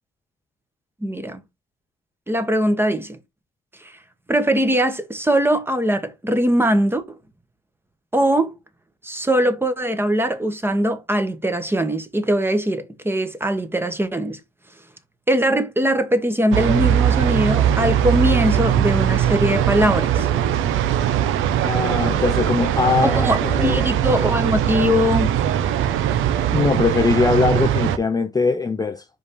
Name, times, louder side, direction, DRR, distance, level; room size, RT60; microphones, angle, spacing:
voice 1, 1.0-1.4 2.3-3.2 4.3-7.0 8.1-8.5 9.0-14.4 15.3-20.3 23.0-25.3, equal, 10° right, 1.1 m, -21 dB
sound 1, 16.5-28.0, right 10 dB, 90° right, 0.7 m, -20 dB
voice 2, 21.6-23.8 26.5-29.0, left 4 dB, 20° left, 0.5 m, -21 dB
5.1 x 3.5 x 5.2 m
cardioid pair, 90°, 20 cm